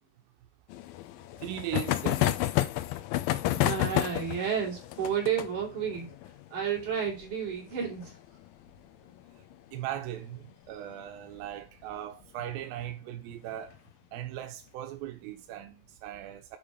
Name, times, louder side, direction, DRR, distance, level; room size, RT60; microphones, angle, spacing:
sound 1, 0.7-9.9 10.2-10.3 10.5-10.6 10.9-11.0 12.4-12.7 13.3-13.7, left 15 dB, 90° left, 2.1 m, -31 dB
voice 1, 1.4-2.5 9.4-9.5 9.7-13.8 14.1-16.6, right 12 dB, 80° right, 2.2 m, -39 dB
voice 2, 3.6-6.1 6.5-8.2, right 7 dB, 45° right, 4.0 m, -31 dB
9.2 x 3.5 x 5.0 m
omnidirectional pair, 5.0 m